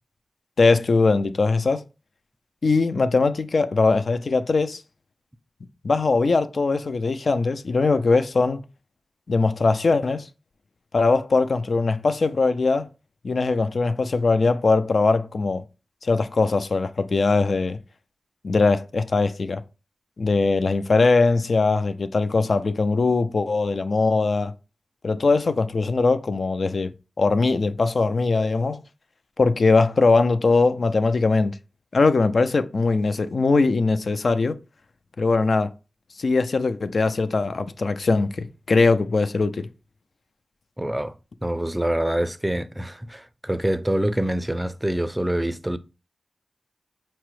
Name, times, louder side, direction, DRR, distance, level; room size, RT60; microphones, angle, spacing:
voice 1, 0.6-1.8 2.6-4.8 5.8-8.6 9.3-10.3 10.9-12.9 13.2-15.6 16.0-17.8 18.4-19.6 20.2-24.5 25.0-26.9 27.2-28.8 29.4-31.6 31.9-34.6 35.2-35.7 36.2-39.7, left 3 dB, 70° left, 0.3 m, -21 dB
voice 2, 40.8-41.1 41.4-45.8, right 1 dB, 15° right, 0.4 m, -25 dB
5.5 x 2.0 x 3.0 m
cardioid pair, 45°, 0 cm